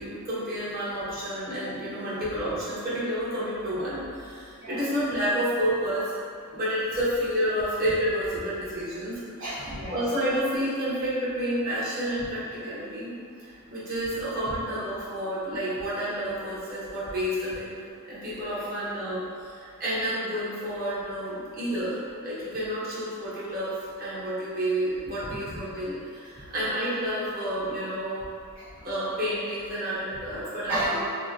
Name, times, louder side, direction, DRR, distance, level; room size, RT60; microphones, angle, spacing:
voice 1, 0.0-6.1 6.5-9.2 9.9-13.1 13.4-17.8 18.1-28.3 28.8-31.1, equal, 45° right, -11 dB, 1.1 m, -30 dB
voice 2, 9.4-10.0 14.5-14.6 18.6-18.7 25.2-25.6 26.3-26.5 28.5-28.8 30.7-31.1, right 1 dB, 60° right, -15 dB, 0.8 m, -34 dB
3.7 x 2.1 x 2.5 m, 2.3 s
head